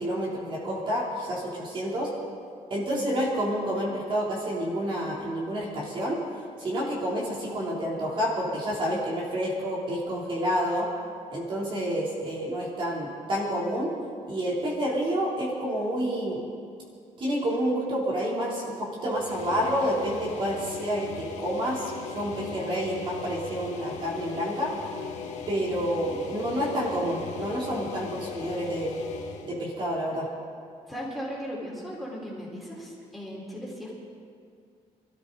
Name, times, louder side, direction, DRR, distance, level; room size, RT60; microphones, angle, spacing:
voice 1, 0.0-2.1 2.7-6.2 6.6-10.9 11.3-13.9 14.3-16.4 17.2-24.7 25.5-29.0 29.4-30.3, equal, 40° right, -4 dB, 3.1 m, -29 dB
sound 1, 19.1-29.5, left 5 dB, 75° left, 1.6 m, -39 dB
voice 2, 30.9-33.9, equal, ahead, -5 dB, 4.1 m, -37 dB
25.5 x 13.5 x 4.0 m, 2.2 s
cardioid pair, 160°, 13 cm